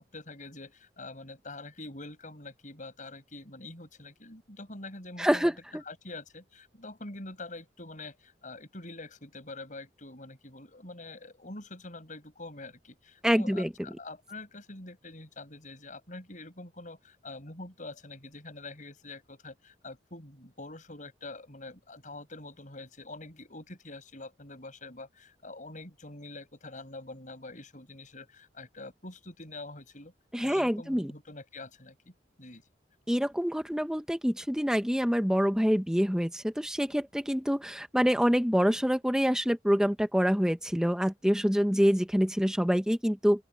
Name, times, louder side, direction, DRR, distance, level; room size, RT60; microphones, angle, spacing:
voice 1, 0.0-5.5 5.8-30.1 30.4-32.6, left 2 dB, 45° left, 7.5 m, -45 dB
voice 2, 5.2-5.5 13.2-13.7 30.3-31.1 33.1-43.4, equal, 5° right, 1.2 m, -26 dB
open air
head